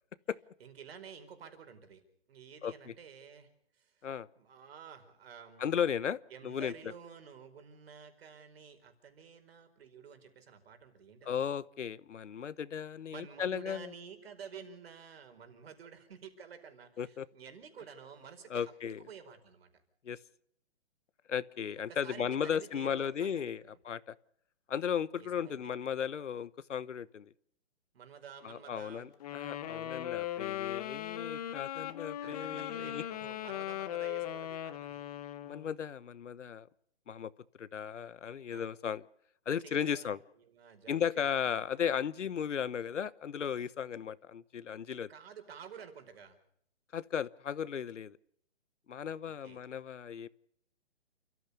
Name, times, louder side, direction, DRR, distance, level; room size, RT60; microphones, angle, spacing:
voice 1, 0.6-2.0 2.3-4.1 4.4-6.0 6.3-11.5 13.1-18.7 19.0-19.7 21.9-23.8 25.2-25.7 27.9-29.1 29.7-30.2 32.2-35.1 38.5-38.6 39.6-41.6 45.1-46.4 49.2-49.6, right 7 dB, 55° right, 8 dB, 4.8 m, -51 dB
voice 2, 2.6-2.9 4.0-4.3 5.6-6.2 6.4-6.7 11.2-13.9 17.0-17.3 18.5-19.0 20.0-20.2 21.3-24.2 24.7-27.3 28.4-33.0 35.4-36.7 37.1-37.3 37.6-39.0 39.5-40.2 40.9-45.1 46.9-48.2 48.9-50.3, left 8 dB, 85° left, 18 dB, 1.1 m, -35 dB
Wind instrument woodwind instrument, 29.2-35.7, left 12 dB, 35° left, 1.3 m, -38 dB
29.5 x 14.5 x 6.8 m, 0.69 s
hypercardioid pair, 155°, 35 cm